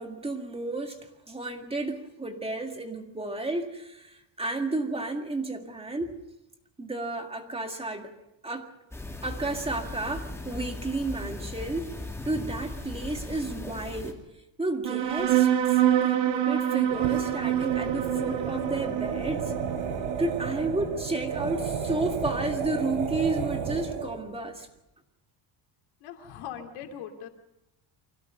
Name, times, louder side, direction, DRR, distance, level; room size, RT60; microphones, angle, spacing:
voice 1, 0.0-6.2 6.8-8.1 8.4-8.7 9.2-11.9 12.2-14.2 14.6-19.5 20.2-24.7, right 2 dB, 10° right, 4 dB, 2.0 m, -32 dB
sound 1, 8.9-14.1, left 2 dB, 5° left, 2.6 m, -38 dB
sound 2, 14.8-21.8, right 12 dB, 70° right, 2.1 m, -27 dB
sound 3, 16.9-24.2, right 6 dB, 85° right, 4.2 m, -32 dB
voice 2, 26.0-27.3, left 9 dB, 80° left, 4 dB, 3.1 m, -40 dB
25.0 x 16.5 x 6.7 m, 0.89 s
cardioid pair, 140°, 48 cm